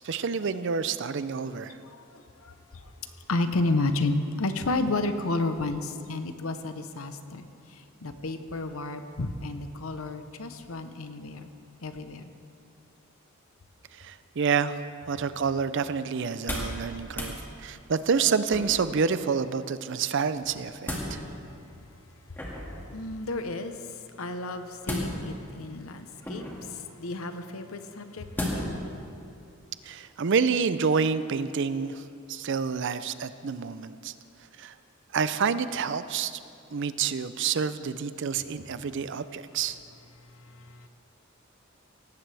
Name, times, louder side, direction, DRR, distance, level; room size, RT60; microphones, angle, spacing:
voice 1, 0.0-1.8 14.0-14.8 15.1-21.2 29.8-32.0 32.3-34.1 34.6-34.7 35.1-36.3 36.7-39.8, right 5 dB, 60° right, 13 dB, 0.5 m, -28 dB
voice 2, 1.8-2.9 3.3-11.5 11.8-12.3 22.9-28.8 40.3-40.9, left 2 dB, 75° left, 8 dB, 0.9 m, -32 dB
sound 1, 16.3-16.8 17.1-17.4 18.5-18.9 20.4-21.1 22.3-22.8 24.8-25.5 26.2-26.7 28.3-28.8 29.3-29.4, left 1 dB, 10° left, 2.1 m, -33 dB
17.5 x 15.5 x 3.4 m, 2.5 s
head